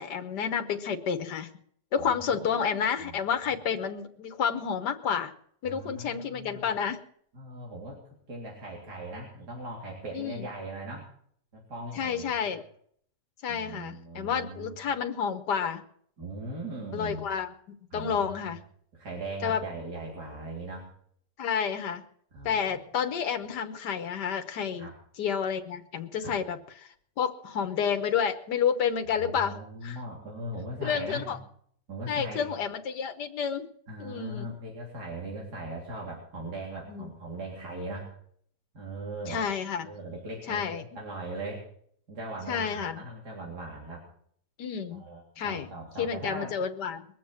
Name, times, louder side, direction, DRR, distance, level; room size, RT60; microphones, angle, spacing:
voice 1, 0.0-1.5 1.9-5.3 5.6-7.0 10.1-10.5 12.0-12.6 13.4-15.8 16.9-17.5 17.9-18.6 19.4-19.6 21.4-22.0 22.4-24.9 25.2-29.5 29.8-30.0 30.8-31.4 32.1-33.7 34.0-34.5 36.9-37.1 39.3-39.9 40.5-40.8 42.5-43.0 44.6-45.0 45.4-45.7 46.0-47.1, left 7 dB, 80° left, 6 dB, 1.7 m, -30 dB
voice 2, 2.0-3.2 3.5-3.6 5.6-6.6 7.3-8.0 8.3-11.1 11.5-12.6 13.5-14.8 16.2-17.3 17.9-18.4 18.9-20.9 22.3-22.7 24.8-24.9 26.2-26.3 29.1-31.3 31.9-32.5 33.9-38.1 38.7-39.4 39.8-41.6 42.1-44.0 44.9-46.5, right 2 dB, 75° right, -2 dB, 4.0 m, -39 dB
22.0 x 7.5 x 7.5 m, 0.63 s
omnidirectional pair, 1.8 m